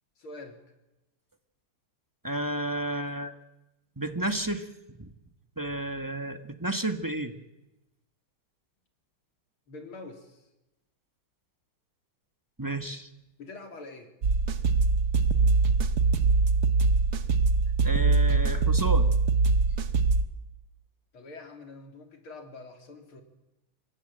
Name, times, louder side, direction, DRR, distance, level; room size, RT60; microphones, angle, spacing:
voice 1, 0.2-0.6 9.7-10.5 13.4-14.1 21.1-23.2, left 3 dB, 75° left, 5 dB, 4.1 m, -45 dB
voice 2, 2.2-3.3 4.0-4.7 5.0-5.1 5.6-7.3 12.6-13.1 17.8-19.1, right 1 dB, 10° right, 8 dB, 1.2 m, -31 dB
sound 1, 14.2-20.2, right 4 dB, 55° right, 1.6 m, -23 dB
25.5 x 21.5 x 9.0 m, 0.95 s
omnidirectional pair, 2.3 m